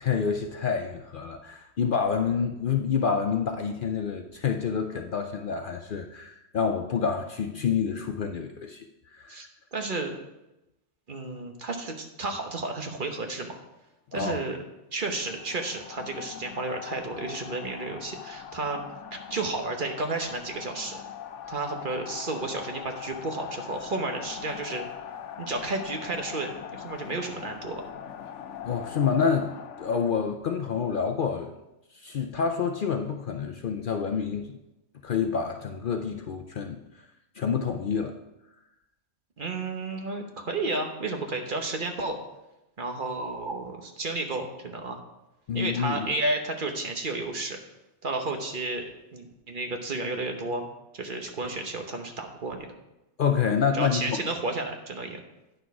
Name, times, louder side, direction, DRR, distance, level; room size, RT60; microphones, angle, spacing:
voice 1, 0.1-8.8 9.1-9.4 14.1-14.4 28.6-29.5 29.8-31.5 31.9-34.5 35.0-36.8 37.4-38.2 45.5-46.1 53.2-54.2, left 6 dB, 55° left, 4 dB, 0.6 m, -28 dB
voice 2, 9.3-10.1 11.1-13.6 14.1-14.6 14.9-18.8 19.1-21.0 21.5-24.9 25.4-27.8 39.4-42.2 42.8-45.0 45.5-47.6 48.0-50.6 50.9-52.7 53.7-55.2, right 2 dB, 45° right, 4 dB, 1.1 m, -32 dB
sound 1, 15.2-30.1, left 9 dB, 80° left, 1.0 m, -41 dB
9.3 x 6.2 x 4.7 m, 0.94 s
omnidirectional pair, 1.2 m